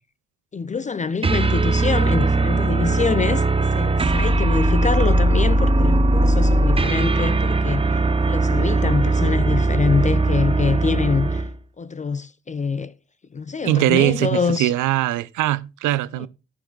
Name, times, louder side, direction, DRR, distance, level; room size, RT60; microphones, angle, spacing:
voice 1, 0.5-11.4 11.8-12.9 13.3-14.7 16.2-16.3, left 5 dB, 25° left, 0.5 m, -25 dB
sound 1, 1.2-11.6, right 2 dB, 20° right, 0.7 m, -19 dB
voice 2, 13.6-16.3, right 16 dB, 85° right, 0.6 m, -21 dB
10.5 x 10.5 x 2.3 m
cardioid pair, 90°, 30 cm